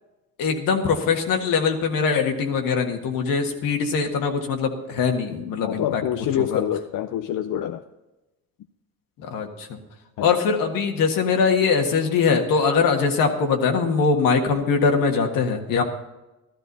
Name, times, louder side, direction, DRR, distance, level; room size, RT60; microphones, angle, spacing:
voice 1, 0.4-6.0 6.4-6.6 9.2-9.8 10.2-15.8, left 5 dB, 85° left, 1.8 m, -22 dB
voice 2, 5.6-7.8 10.2-10.3, left 11 dB, 65° left, 0.6 m, -26 dB
13.5 x 12.5 x 4.1 m
cardioid pair, 95°, 33 cm